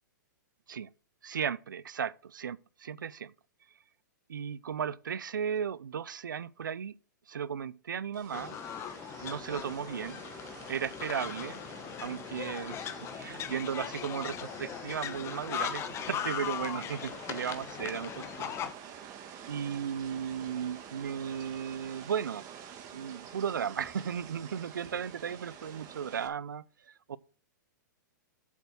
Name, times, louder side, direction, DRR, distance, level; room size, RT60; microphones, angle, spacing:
voice 1, 1.2-3.3 4.3-7.0 7.3-8.6 9.2-10.2 10.7-11.6 12.0-18.5 19.5-22.5 22.9-27.2, right 8 dB, 85° right, 0.6 m, -35 dB
sound 1, 8.1-26.3, right 8 dB, 35° right, 1.9 m, -48 dB
sound 2, 8.3-18.7, left 9 dB, 25° left, 1.1 m, -39 dB
8.2 x 7.2 x 6.2 m
hypercardioid pair, 120°, 10 cm